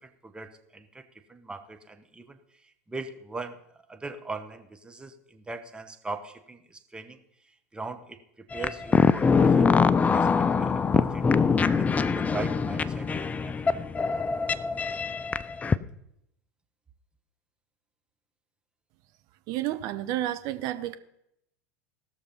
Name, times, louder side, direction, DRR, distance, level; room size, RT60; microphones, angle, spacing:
voice 1, 0.0-3.6 3.9-7.2 7.7-11.3 11.7-13.7, right 3 dB, 10° right, 7 dB, 1.1 m, -40 dB
sound 1, 8.5-15.8, left 5 dB, 20° left, 0.5 m, -23 dB
voice 2, 19.5-21.0, right 13 dB, 50° right, 10 dB, 0.8 m, -30 dB
17.0 x 6.6 x 5.6 m, 0.77 s
hypercardioid pair, 85°, 8 cm